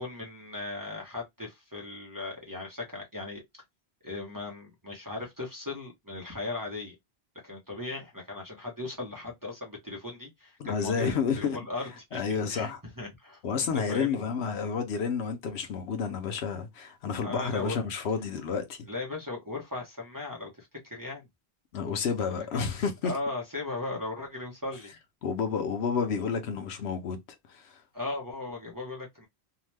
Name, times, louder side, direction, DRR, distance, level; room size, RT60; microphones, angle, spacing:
voice 1, 0.0-3.4 4.0-6.9 7.4-11.8 12.1-12.2 12.5-12.7 13.0-14.2 17.2-17.8 18.9-21.3 22.5-22.6 23.0-24.9 27.9-29.3, left 2 dB, 20° right, 0.7 m, -37 dB
voice 2, 10.6-11.7 12.1-12.8 13.4-18.8 21.7-23.1 25.2-27.2 27.5-27.8, left 6 dB, 80° left, 0.9 m, -30 dB
2.8 x 2.1 x 3.2 m
omnidirectional pair, 1.1 m